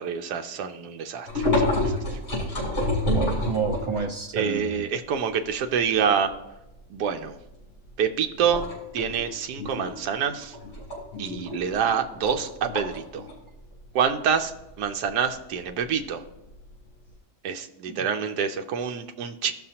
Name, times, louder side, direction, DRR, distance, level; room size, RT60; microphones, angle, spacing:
voice 1, 0.0-2.0 4.3-6.3 6.9-7.3 8.0-8.6 8.9-10.6 11.2-13.3 13.9-14.5 14.8-16.2 17.4-19.5, right 7 dB, 85° right, 5 dB, 1.2 m, -27 dB
sound 1, 1.3-4.2 4.7-4.8 5.1-6.3 6.7-6.9 7.3-7.9 8.3-17.1, left 2 dB, 40° left, 3.8 m, -29 dB
voice 2, 3.0-4.8 17.9-18.0, right 5 dB, 50° right, 0 dB, 0.3 m, -29 dB
15.0 x 6.2 x 2.9 m, 0.93 s
omnidirectional pair, 1.7 m